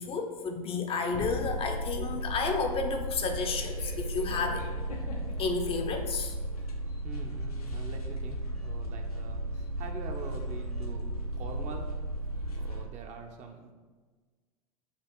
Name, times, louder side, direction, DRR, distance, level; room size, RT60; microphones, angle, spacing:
voice 1, 0.0-4.6 5.4-6.4, left 4 dB, 30° left, 4 dB, 0.5 m, -31 dB
sound 1, 1.1-12.8, right 1 dB, 90° left, 0.6 m, -35 dB
voice 2, 7.0-12.0 12.6-13.7, right 3 dB, 40° right, 4 dB, 0.6 m, -44 dB
6.8 x 2.5 x 3.0 m, 1.4 s
hypercardioid pair, 90°, 19 cm